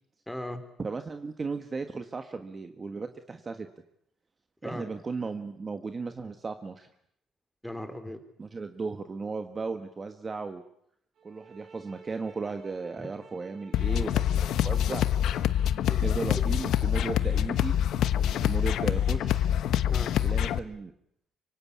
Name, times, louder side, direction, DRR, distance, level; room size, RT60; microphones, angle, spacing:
voice 1, 0.3-0.6 4.6-4.9 7.6-8.2 13.0-13.1 15.9-16.4 19.9-20.2, left 1 dB, 5° left, 8 dB, 3.5 m, -38 dB
voice 2, 0.8-3.7 4.6-6.9 8.4-10.6 11.2-15.1 16.0-17.8 18.1-19.5 20.2-20.9, right 4 dB, 25° right, 7 dB, 1.4 m, -36 dB
sound 1, 11.2-16.1, right 5 dB, 55° right, 4.6 m, -53 dB
sound 2, 13.7-20.6, left 10 dB, 70° left, 1.1 m, -26 dB
25.0 x 24.5 x 8.5 m, 0.73 s
cardioid pair, 135°, 0 cm